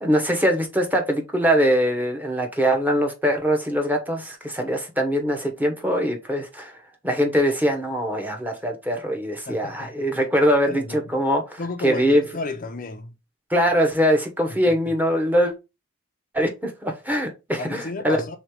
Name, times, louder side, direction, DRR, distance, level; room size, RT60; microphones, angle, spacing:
voice 1, 0.0-6.7 7.0-12.2 13.5-15.5 16.3-18.2, equal, 10° right, 0.9 m, -22 dB
voice 2, 9.5-10.0 10.6-11.0 11.6-13.1 17.6-18.4, left 3 dB, 40° left, 0.5 m, -33 dB
3.5 x 3.1 x 4.8 m
head